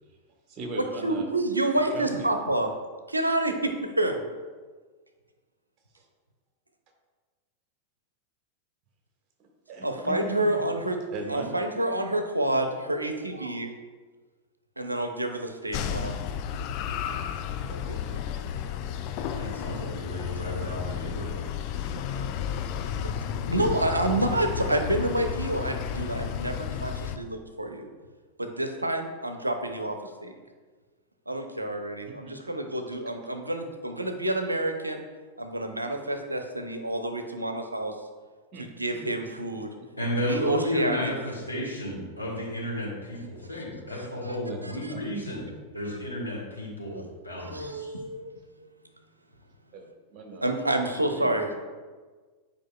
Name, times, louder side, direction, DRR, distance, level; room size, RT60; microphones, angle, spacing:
voice 1, 0.5-1.3 1.9-2.3 6.0-6.1 9.4-10.6 11.1-11.5 17.8-17.9 32.2-32.3 38.5-38.7 39.2-39.3 41.5-41.7 44.5-45.0 49.7-49.8 50.1-51.6, right 3 dB, 35° right, 1 dB, 1.4 m, -39 dB
voice 2, 1.0-2.7 3.1-4.3 9.8-11.0 11.3-13.7 14.8-16.1 17.7-18.2 23.0-27.9 28.4-30.3 31.3-35.0 35.4-37.9 38.6-39.7 40.3-41.1 44.2-44.4 44.6-44.9 45.9-46.0 47.4-48.4 50.4-51.6, right 1 dB, 85° right, 5 dB, 0.6 m, -28 dB
sound 1, 15.7-27.2, left 8 dB, 45° left, 0.4 m, -32 dB
voice 3, 19.3-21.4 39.9-47.9, left 1 dB, 90° left, -5 dB, 1.7 m, -33 dB
9.0 x 4.9 x 2.3 m, 1.4 s
figure-of-eight pair, 90°, 0 cm